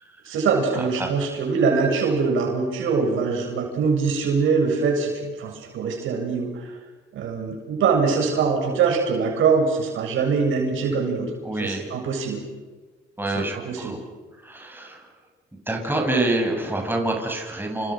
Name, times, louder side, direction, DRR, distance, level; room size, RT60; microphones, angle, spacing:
voice 1, 0.2-6.8 7.1-11.3 11.6-12.4 13.3-14.0, right 5 dB, 80° right, 1 dB, 7.8 m, -23 dB
voice 2, 11.5-11.8 13.2-14.0 14.4-15.0 15.7-17.9, right 2 dB, 10° right, 2 dB, 7.4 m, -26 dB
30.0 x 28.5 x 6.5 m, 1.3 s
cardioid pair, 90°, 20 cm